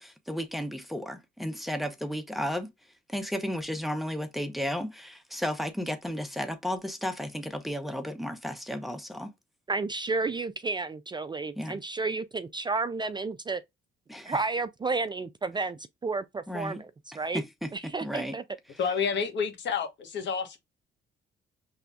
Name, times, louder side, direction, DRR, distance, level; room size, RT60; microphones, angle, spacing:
voice 1, 0.0-2.7 3.1-9.3 11.6-11.8 14.1-14.4 16.5-16.8 17.3-18.3 18.7-18.8, equal, ahead, 0.8 m, -33 dB
voice 2, 9.7-13.6 14.3-17.4 17.7-18.4, right 3 dB, 25° right, 0.3 m, -31 dB
voice 3, 18.8-20.6, left 6 dB, 65° left, 1.2 m, -29 dB
5.4 x 3.4 x 2.4 m
cardioid pair, 90°, 20 cm